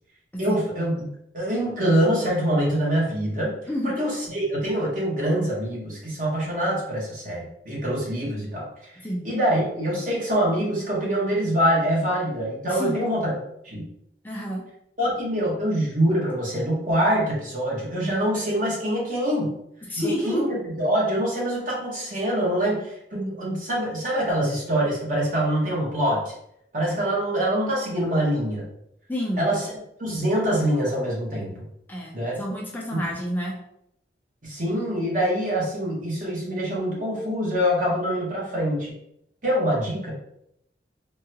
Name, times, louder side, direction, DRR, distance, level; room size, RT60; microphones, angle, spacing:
voice 1, 0.4-1.1 1.3-3.5 3.8-13.4 13.6-13.9 15.0-19.6 20.0-26.3 26.7-28.7 29.4-29.7 30.0-31.7 32.1-32.4 32.9-33.0 34.4-39.0 39.4-40.1, equal, 50° right, -4 dB, 1.2 m, -25 dB
voice 2, 14.2-14.6 19.8-20.5 29.1-29.5 31.9-33.6, equal, 10° left, -2 dB, 0.4 m, -29 dB
3.6 x 2.3 x 2.8 m, 0.76 s
head